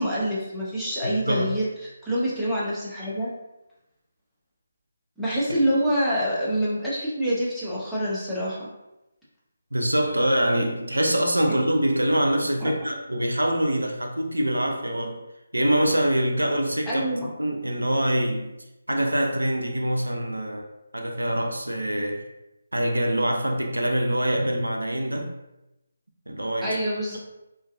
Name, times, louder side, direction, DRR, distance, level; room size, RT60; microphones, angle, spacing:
voice 1, 0.0-3.3 5.2-8.7 12.6-12.7 16.9-17.3 26.6-27.2, equal, ahead, -11 dB, 0.5 m, -26 dB
voice 2, 1.0-1.5 9.7-15.2 15.5-17.0 17.4-18.5 18.9-20.6 20.9-22.2 22.7-25.3 26.3-26.8, right 1 dB, 80° right, 2 dB, 0.4 m, -24 dB
2.4 x 2.2 x 2.4 m, 0.93 s
figure-of-eight pair, 150°, 0 cm